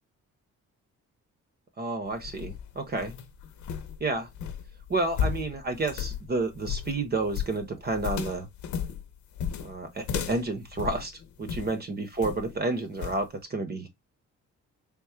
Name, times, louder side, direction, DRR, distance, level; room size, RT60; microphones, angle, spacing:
voice 1, 1.8-3.1 4.0-4.3 4.9-8.5 9.6-11.1 11.4-14.0, right 3 dB, 35° right, 0.8 m, -30 dB
sound 1, 2.1-11.8 12.2-12.6 13.0-13.2, left 8 dB, 75° left, 0.8 m, -34 dB
3.6 x 2.3 x 4.3 m
cardioid pair, 120°, 29 cm